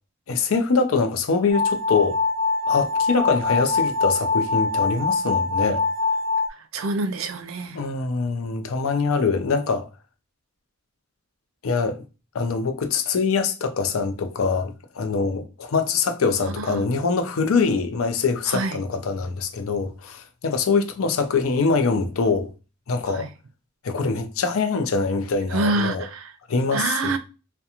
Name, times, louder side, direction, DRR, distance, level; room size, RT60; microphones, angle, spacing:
voice 1, 0.3-2.2 2.7-5.8 7.7-9.9 11.6-12.0 12.3-22.5 22.9-23.3 23.8-26.1 26.5-27.2, left 4 dB, 85° left, 0.5 m, -24 dB
sound 1, 1.5-6.5, left 4 dB, 65° left, 1.0 m, -23 dB
voice 2, 6.7-7.8 16.6-16.8 18.5-18.8 23.1-23.3 25.5-26.3 26.7-27.2, right 3 dB, 75° right, 0.4 m, -26 dB
2.4 x 2.2 x 2.8 m
head